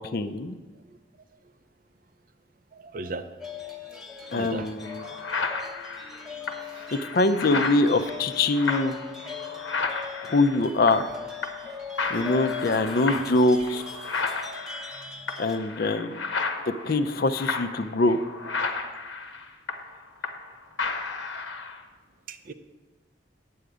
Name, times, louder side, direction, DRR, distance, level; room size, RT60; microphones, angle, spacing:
voice 1, 0.1-0.6 4.3-4.9 6.9-9.0 10.3-11.1 12.1-13.8 15.4-16.2 16.8-18.2, left 2 dB, 50° left, 11 dB, 0.5 m, -23 dB
voice 2, 2.7-3.4 4.3-4.7 5.0-5.2 6.7-6.8 7.6-7.7 12.2-12.3 13.0-13.3 16.6-16.7 22.3-22.5, right 3 dB, 45° right, 10 dB, 0.5 m, -38 dB
sound 1, 3.4-15.6, left 6 dB, ahead, 0.8 m, -40 dB
sound 2, 4.3-4.4 4.8-11.2 11.4-11.7 12.0-20.5 20.8-21.8, left 4 dB, 80° left, 0.9 m, -33 dB
9.4 x 4.9 x 7.9 m, 1.3 s
head